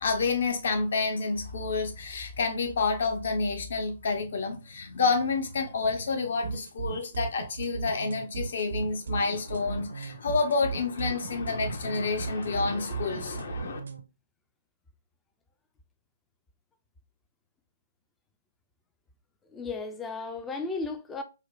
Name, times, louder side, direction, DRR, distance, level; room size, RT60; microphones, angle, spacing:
voice 1, 0.0-13.8, left 4 dB, 55° left, 0.7 m, -29 dB
sound 1, 6.4-14.0, right 6 dB, 65° right, 0.5 m, -36 dB
voice 2, 19.5-21.2, left 3 dB, 10° left, 0.3 m, -34 dB
4.3 x 2.1 x 2.3 m
figure-of-eight pair, 130°, 0 cm